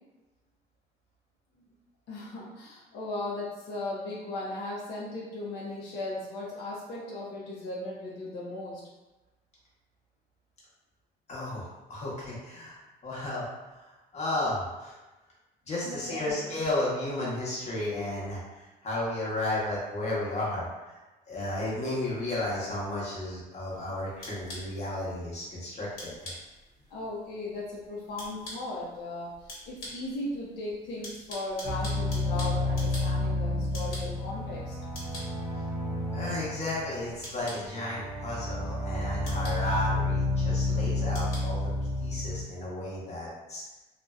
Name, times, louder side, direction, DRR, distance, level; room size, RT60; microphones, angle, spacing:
voice 1, 2.1-8.8 15.8-16.3 26.9-34.8, left 2 dB, 85° left, -5 dB, 0.6 m, -37 dB
voice 2, 11.3-15.0 15.6-21.0 21.3-26.3 36.1-41.6 42.0-43.6, left 1 dB, 40° left, -6 dB, 0.9 m, -33 dB
sound 1, 23.6-42.4, left 1 dB, 60° left, 1.2 m, -47 dB
sound 2, 31.6-42.4, left 2 dB, 10° right, 0.7 m, -31 dB
2.5 x 2.1 x 2.3 m, 1.1 s
cardioid pair, 110°, 17 cm